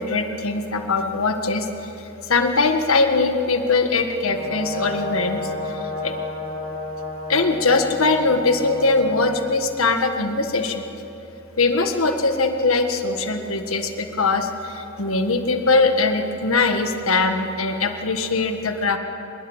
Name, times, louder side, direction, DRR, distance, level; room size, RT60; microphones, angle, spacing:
voice 1, 0.0-1.7 2.0-6.1 7.3-10.9 11.6-19.0, left 3 dB, 80° left, 6 dB, 1.7 m, -21 dB
Brass instrument, 4.2-9.4, left 2 dB, 20° right, 6.0 m, -31 dB
24.0 x 21.5 x 7.3 m, 3.0 s
head